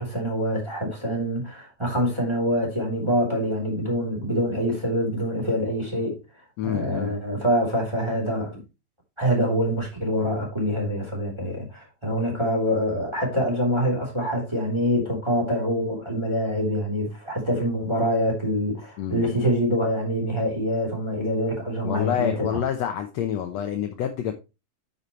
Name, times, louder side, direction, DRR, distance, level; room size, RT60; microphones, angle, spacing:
voice 1, 0.0-6.2 6.6-8.6 9.2-22.3, equal, 10° right, 3.3 m, -25 dB
voice 2, 6.6-7.1 19.0-19.3 21.8-24.3, left 9 dB, 70° left, 1.8 m, -27 dB
9.5 x 6.9 x 3.1 m
omnidirectional pair, 3.7 m